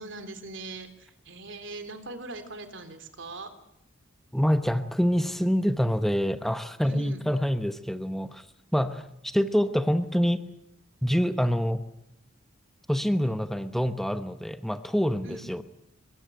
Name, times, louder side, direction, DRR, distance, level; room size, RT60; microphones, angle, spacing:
voice 1, 0.0-3.5 6.8-7.2 15.2-15.5, right 3 dB, 60° right, 9 dB, 3.5 m, -41 dB
voice 2, 4.3-8.5 8.7-10.4 11.0-11.8 12.9-15.6, equal, ahead, 9 dB, 1.0 m, -26 dB
23.5 x 21.5 x 9.3 m, 0.81 s
head